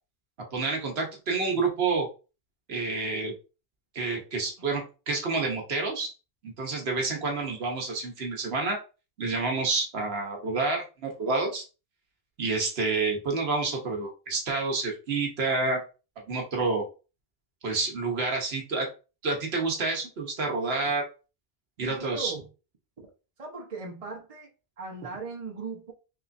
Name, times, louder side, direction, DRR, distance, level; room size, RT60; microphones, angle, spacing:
voice 1, 0.5-2.1 2.7-3.3 3.9-6.1 6.4-8.8 9.2-11.6 12.4-15.8 16.3-16.8 17.6-18.9 19.2-21.0 21.8-22.3, right 3 dB, 80° right, 1 dB, 1.2 m, -28 dB
voice 2, 21.8-22.5 23.0-23.1 23.4-24.5 24.8-25.9, right 4 dB, 35° right, 0 dB, 1.0 m, -38 dB
3.6 x 3.1 x 2.5 m, 0.32 s
omnidirectional pair, 1.0 m